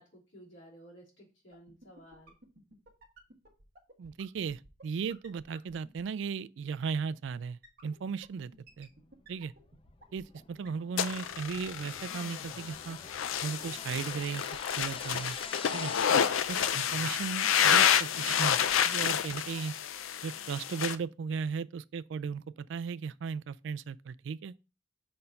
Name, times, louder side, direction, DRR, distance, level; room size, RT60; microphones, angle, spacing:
voice 1, 0.0-2.3 16.2-16.4, equal, 70° left, 3.2 m, -55 dB
sound 1, 1.5-6.1 7.6-10.4 10.6-10.7 10.9-11.0 11.2-11.3 11.5-11.6 11.8-11.9 12.1-12.2 12.4-12.5 12.7-12.8 13.0-13.1 13.3-13.4 13.6-13.7 13.9-14.0 14.2-14.3 14.5-14.9 15.1-15.2 15.4-15.5 15.7-15.8 16.0-16.1 16.3-16.4 16.6-16.7 16.9-17.0 17.2-17.3 17.5-17.6 17.8-17.9 18.1-18.2 18.4-18.7 19.0-19.1 19.3-19.4, right 2 dB, 50° right, 1.5 m, -55 dB
voice 2, 4.0-8.9 9.3-9.5 10.1-13.0 13.4-15.4 15.7-15.9 16.5-18.6 18.8-19.7 20.2-24.5, right 5 dB, 65° right, 0.3 m, -36 dB
sound 2, 9.1-16.0, left 5 dB, 25° left, 0.4 m, -46 dB
sound 3, 11.0-21.0, left 8 dB, 90° left, 0.5 m, -29 dB
5.6 x 4.3 x 5.2 m
head